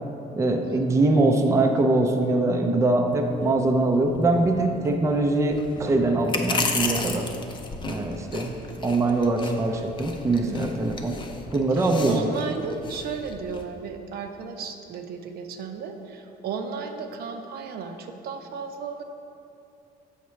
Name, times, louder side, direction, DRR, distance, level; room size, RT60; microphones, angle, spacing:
voice 1, 0.4-7.3 7.8-11.2 11.5-12.3, right 2 dB, 15° right, 3 dB, 0.5 m, -23 dB
sound 1, 3.1-13.6, left 3 dB, 30° left, 0.6 m, -34 dB
voice 2, 10.4-10.7 11.7-19.0, right 5 dB, 65° right, 6 dB, 0.6 m, -34 dB
7.0 x 5.7 x 3.2 m, 2.7 s
cardioid pair, 110°, 17 cm